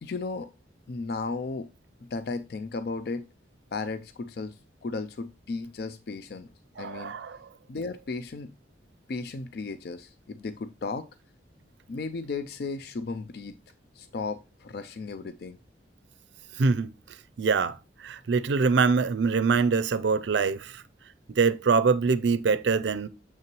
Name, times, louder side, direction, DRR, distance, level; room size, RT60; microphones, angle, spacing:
voice 1, 0.0-0.5 0.9-1.7 2.1-3.3 3.7-4.6 4.8-6.5 6.8-7.1 7.7-8.5 9.1-11.1 11.9-13.5 14.0-15.6, left 3 dB, 55° left, 0.4 m, -35 dB
voice 2, 6.8-7.4 16.6-16.9 17.4-17.8 18.0-20.8 21.4-23.1, right 5 dB, 70° right, 0.4 m, -24 dB
6.8 x 5.7 x 3.0 m
head